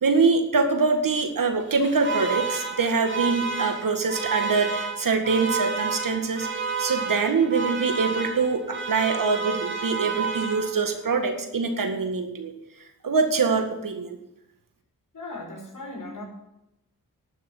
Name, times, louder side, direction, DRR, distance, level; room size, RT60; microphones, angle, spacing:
voice 1, 0.0-6.5 6.8-12.5 13.0-14.2, right 4 dB, 65° right, 6 dB, 2.0 m, -24 dB
Alarm, 1.6-11.0, right 4 dB, 35° right, 4.2 m, -31 dB
voice 2, 15.1-16.2, left 2 dB, 60° left, -2 dB, 5.3 m, -37 dB
11.5 x 6.2 x 9.4 m, 0.87 s
cardioid pair, 60°, 36 cm